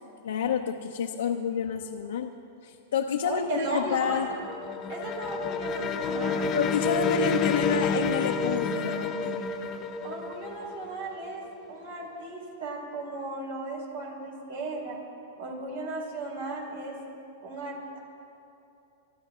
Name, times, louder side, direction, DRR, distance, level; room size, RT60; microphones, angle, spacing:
voice 1, 0.2-2.3 2.6-4.3 6.5-9.5, left 7 dB, 80° left, 2 dB, 0.8 m, -29 dB
voice 2, 3.2-4.4 4.9-6.6 10.0-11.4 11.7-15.0 15.4-17.0 17.4-18.0, right 2 dB, 80° right, -2 dB, 4.4 m, -36 dB
sound 1, 3.7-11.5, left 4 dB, 35° left, 0.8 m, -29 dB
23.5 x 12.5 x 3.8 m, 2.8 s
hypercardioid pair, 115°, 0 cm